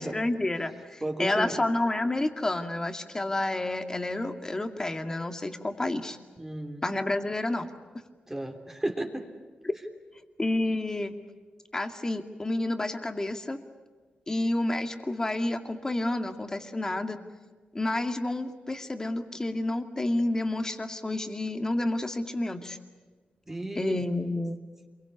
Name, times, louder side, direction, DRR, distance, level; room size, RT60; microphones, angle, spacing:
voice 1, 0.0-6.2 6.8-7.7 10.4-11.2 11.7-13.6 14.3-17.2 17.7-22.8 23.8-24.6, left 2 dB, 20° left, 6 dB, 2.2 m, -29 dB
voice 2, 1.0-1.5 6.4-6.8 8.3-9.3 23.5-24.0, right 1 dB, 15° right, 3 dB, 3.2 m, -33 dB
27.5 x 23.0 x 8.5 m, 1.4 s
wide cardioid pair, 130°, 3 cm